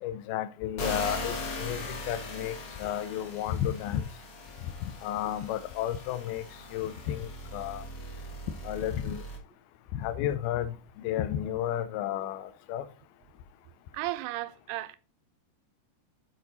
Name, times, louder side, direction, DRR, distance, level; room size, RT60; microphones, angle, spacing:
voice 1, 0.0-4.1 5.0-6.5 6.7-7.9 8.6-9.2 9.9-12.8, left 11 dB, 80° left, 2.5 m, -32 dB
sound 1, 0.8-9.4, left 1 dB, 55° left, 1.5 m, -40 dB
voice 2, 13.9-15.0, right 16 dB, 85° right, 2.6 m, -34 dB
12.0 x 4.3 x 4.1 m
omnidirectional pair, 4.8 m